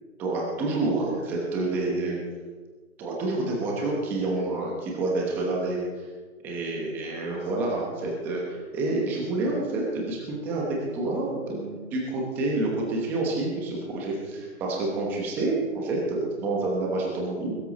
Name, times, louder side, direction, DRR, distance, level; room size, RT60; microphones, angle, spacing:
voice 1, 0.2-2.2 3.0-5.8 6.4-17.5, right 2 dB, 5° right, -2 dB, 0.9 m, -28 dB
21.0 x 13.0 x 4.1 m, 1.4 s
hypercardioid pair, 160°, 44 cm